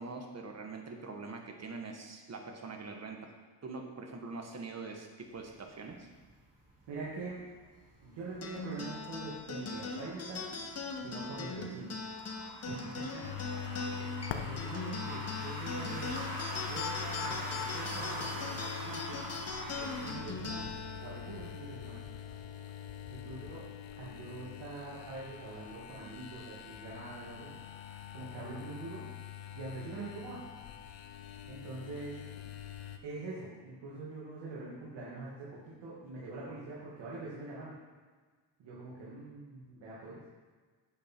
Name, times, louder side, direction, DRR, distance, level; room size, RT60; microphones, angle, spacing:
voice 1, 0.0-3.3 3.6-6.1 13.8-14.1, right 3 dB, 35° right, 3 dB, 1.4 m, -44 dB
sound 1, 5.2-20.1, right 1 dB, 20° right, 3.1 m, -44 dB
voice 2, 6.9-7.4 8.0-10.6 11.0-12.0 12.6-13.2 14.3-16.1 16.7-19.3 19.7-20.7 21.0-22.0 23.1-23.6 24.0-27.6 28.1-29.0 29.5-30.7 31.4-32.2 33.0-37.7 38.6-40.2, right 3 dB, 75° right, -7 dB, 2.4 m, -44 dB
sound 2, 8.4-23.2, left 3 dB, 35° left, 1.2 m, -41 dB
sound 3, 13.2-33.0, left 10 dB, 80° left, 0.9 m, -44 dB
8.4 x 8.3 x 4.6 m, 1.4 s
cardioid pair, 100°, 44 cm